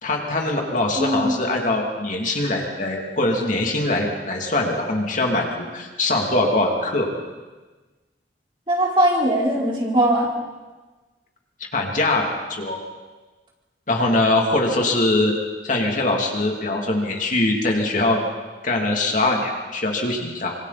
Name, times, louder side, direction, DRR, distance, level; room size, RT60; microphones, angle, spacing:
voice 1, 0.0-7.1 11.7-12.2 12.5-12.8 13.9-15.3 15.6-18.2 18.6-20.5, left 2 dB, 45° left, 0 dB, 2.9 m, -22 dB
voice 2, 1.0-1.4 8.7-10.3, right 1 dB, 30° right, -3 dB, 4.7 m, -20 dB
26.0 x 24.0 x 4.3 m, 1.3 s
head